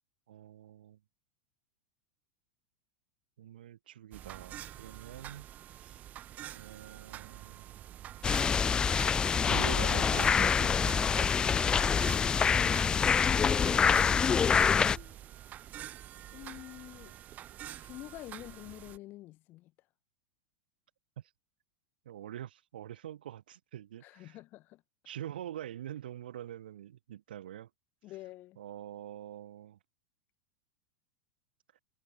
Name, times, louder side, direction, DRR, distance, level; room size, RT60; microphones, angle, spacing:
voice 1, 0.3-1.0 3.4-5.5 5.8-6.0 6.5-7.8 9.5-11.1 22.0-24.4 25.0-27.7 28.6-29.8, right 11 dB, 90° right, 2.8 m, -44 dB
sound 1, 4.1-19.0, right 12 dB, 35° right, 3.0 m, -47 dB
sound 2, 8.2-15.0, left 6 dB, 15° left, 0.5 m, -26 dB
voice 2, 13.5-15.2 16.3-17.2 17.8-19.7 24.0-24.8 28.0-28.6, left 17 dB, 40° left, 5.7 m, -48 dB
supercardioid pair, 135°, 5 cm